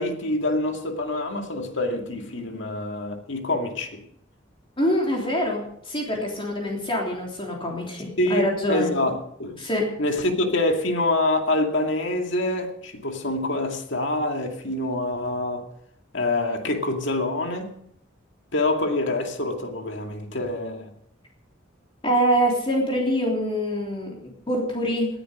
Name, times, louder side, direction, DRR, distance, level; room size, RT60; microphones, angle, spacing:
voice 1, 0.0-4.0 8.2-9.6 10.0-15.7 16.1-17.8 18.5-20.9, left 2 dB, 65° left, 2.2 m, -26 dB
voice 2, 4.8-8.9 9.6-9.8 22.0-24.1 24.5-25.1, equal, 25° left, 3.4 m, -25 dB
18.5 x 10.5 x 5.1 m
head